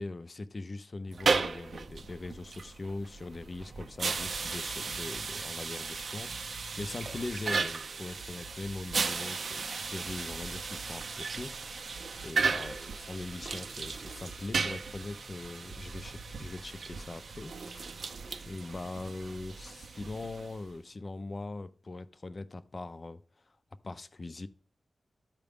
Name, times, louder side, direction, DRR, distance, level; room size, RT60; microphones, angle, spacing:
voice 1, 0.0-11.9 12.2-17.8 18.5-23.2 23.8-24.5, left 2 dB, 35° left, 0.5 m, -41 dB
sound 1, 1.1-20.7, right 4 dB, 65° right, 0.5 m, -36 dB
sound 2, 3.6-19.9, right 2 dB, 90° right, 1.1 m, -52 dB
13.5 x 4.8 x 3.5 m
wide cardioid pair, 145°, 0 cm